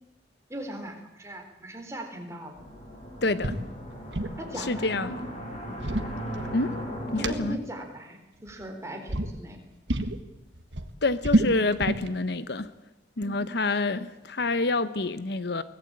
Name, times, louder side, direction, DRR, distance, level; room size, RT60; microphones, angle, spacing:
voice 1, 0.5-2.6 3.5-3.6 4.4-5.2 7.2-9.6 13.2-13.4, right 1 dB, 15° right, 3.7 m, -39 dB
sound 1, 2.5-7.5, equal, 35° left, 5.6 m, -37 dB
voice 2, 3.2-3.5 4.6-5.2 6.5-6.7 7.1-7.6 11.0-12.7 13.2-15.6, left 3 dB, 60° left, 0.9 m, -27 dB
sound 2, 3.4-3.6 3.9-4.4 5.6-6.8 7.2-7.3 8.4-8.7 9.1-9.3 9.9-10.2 10.5-12.1, right 1 dB, 70° right, 1.7 m, -27 dB
24.0 x 18.5 x 8.7 m
head